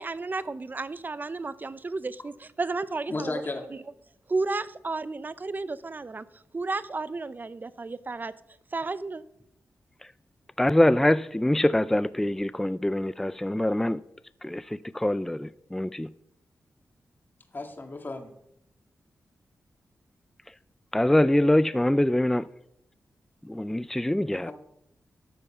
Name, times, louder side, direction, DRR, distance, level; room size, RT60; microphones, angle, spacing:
voice 1, 0.0-3.3 4.3-8.3 8.7-9.2, right 3 dB, 35° right, 0.7 m, -32 dB
voice 2, 3.1-3.6 17.5-18.3 24.4-24.5, left 3 dB, 35° left, 2.0 m, -34 dB
voice 3, 10.6-14.0 14.4-14.6 14.9-16.1 20.9-22.5 23.5-24.5, left 1 dB, 5° left, 0.4 m, -24 dB
13.0 x 6.9 x 5.6 m
cardioid pair, 65°, 5 cm